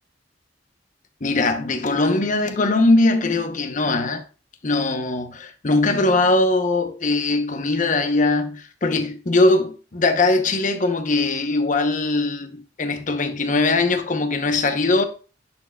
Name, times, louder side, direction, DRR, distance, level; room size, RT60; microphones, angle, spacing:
voice 1, 1.2-4.2 4.6-15.1, left 2 dB, 45° left, 0.9 m, -21 dB
10.5 x 4.7 x 2.3 m
head